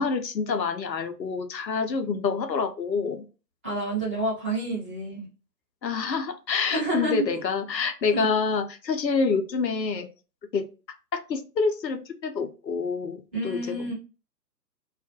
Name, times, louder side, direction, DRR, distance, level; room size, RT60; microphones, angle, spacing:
voice 1, 0.0-3.2 5.8-10.1 10.5-10.7 11.1-13.9, left 5 dB, 90° left, 7 dB, 0.6 m, -27 dB
voice 2, 3.6-5.3 6.7-7.3 8.1-8.3 13.3-13.9, right 2 dB, 10° right, -11 dB, 0.6 m, -29 dB
2.3 x 2.1 x 2.7 m, 0.33 s
figure-of-eight pair, 125°, 49 cm